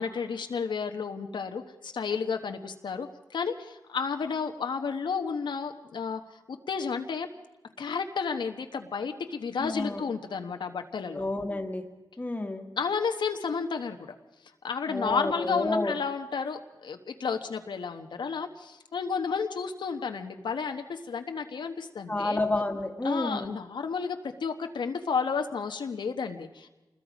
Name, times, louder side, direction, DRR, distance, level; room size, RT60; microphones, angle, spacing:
voice 1, 0.0-6.2 6.5-7.3 7.8-11.2 12.8-14.1 14.6-22.4 23.0-26.7, left 5 dB, 75° left, 5 dB, 1.1 m, -32 dB
voice 2, 9.6-10.0 11.1-11.8 12.2-12.7 14.9-15.9 22.1-23.5, left 2 dB, 20° left, 4 dB, 1.8 m, -30 dB
27.5 x 21.0 x 5.1 m, 1.1 s
wide cardioid pair, 120°, 8 cm